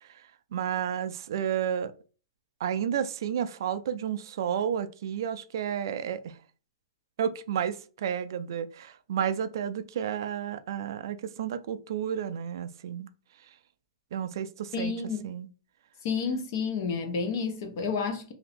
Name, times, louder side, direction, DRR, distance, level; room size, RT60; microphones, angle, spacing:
voice 1, 0.5-1.9 2.6-6.4 7.2-13.1 14.1-14.9 15.2-15.5, right 8 dB, 50° right, 0.3 m, -31 dB
voice 2, 14.7-15.3 16.0-18.3, left 5 dB, 35° left, 0.6 m, -30 dB
2.8 x 2.5 x 3.3 m
hypercardioid pair, 175°, 3 cm